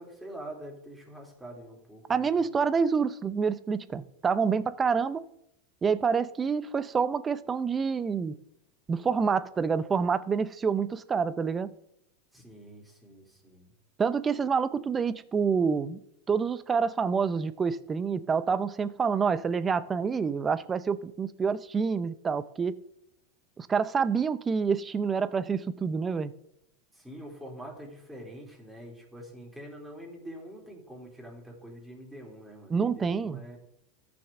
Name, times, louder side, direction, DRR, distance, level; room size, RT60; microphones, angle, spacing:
voice 1, 0.0-2.6 12.3-13.7 26.9-33.6, right 1 dB, 5° right, 3.3 m, -45 dB
voice 2, 2.1-5.2 5.8-8.4 8.9-11.7 14.0-16.0 16.3-22.8 23.6-26.3 32.7-33.4, right 5 dB, 25° right, 0.6 m, -27 dB
14.0 x 6.2 x 3.7 m
hypercardioid pair, 105°, 0 cm